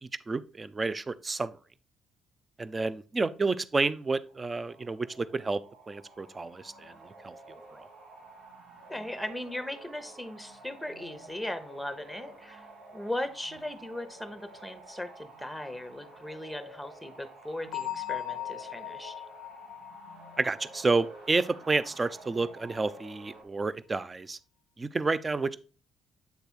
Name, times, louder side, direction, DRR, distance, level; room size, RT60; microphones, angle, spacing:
voice 1, 0.3-1.6 2.6-7.9 20.4-24.4 24.8-25.5, right 3 dB, 25° right, 0.4 m, -30 dB
sound 1, 4.3-23.4, right 2 dB, 80° right, 1.7 m, -51 dB
voice 2, 8.9-12.7 12.9-19.1, left 1 dB, ahead, 1.0 m, -38 dB
Bell, 17.7-21.4, left 13 dB, 90° left, 0.4 m, -39 dB
8.1 x 3.4 x 4.4 m
cardioid pair, 80°, 0 cm